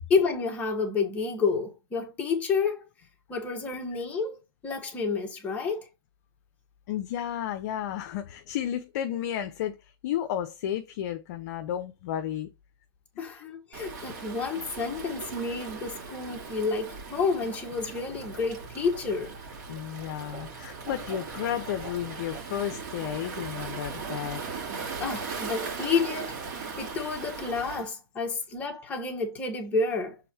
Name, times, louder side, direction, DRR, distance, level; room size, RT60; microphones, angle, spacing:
voice 1, 0.1-2.8 3.3-4.4 4.6-5.9 13.2-19.3 25.0-26.4 26.8-30.2, left 4 dB, 10° left, 1.4 m, -29 dB
voice 2, 6.9-12.5 13.2-13.4 19.7-24.4, left 10 dB, 40° left, 0.7 m, -33 dB
Waves surf, 13.7-27.9, right 5 dB, 45° right, 2.3 m, -39 dB
sound 1, 17.7-24.2, right 4 dB, 25° right, 1.5 m, -47 dB
6.7 x 3.5 x 4.5 m
hypercardioid pair, 155°, 13 cm